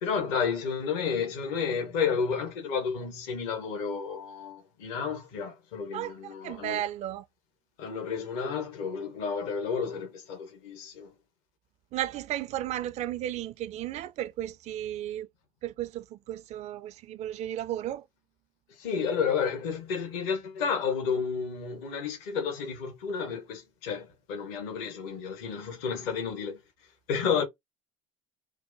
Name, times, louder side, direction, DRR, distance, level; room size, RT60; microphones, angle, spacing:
voice 1, 0.0-6.8 7.8-11.1 18.7-26.6 27.1-27.4, left 6 dB, 60° left, 1.0 m, -31 dB
voice 2, 5.9-7.2 11.9-15.3 15.6-18.0, right 12 dB, 45° right, 0.4 m, -34 dB
4.5 x 2.1 x 2.6 m
figure-of-eight pair, 65°, 16 cm